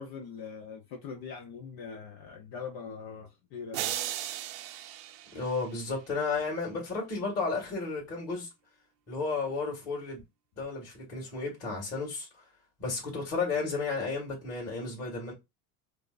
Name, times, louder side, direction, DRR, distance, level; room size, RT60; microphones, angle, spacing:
voice 1, 0.0-4.0, left 5 dB, 50° left, 0.8 m, -42 dB
sound 1, 3.7-6.1, right 12 dB, 70° right, 0.7 m, -37 dB
voice 2, 5.3-8.5 9.1-10.2 10.6-12.4 12.8-15.3, left 4 dB, 30° left, 2.2 m, -33 dB
4.6 x 2.1 x 2.5 m
supercardioid pair, 100°, 47 cm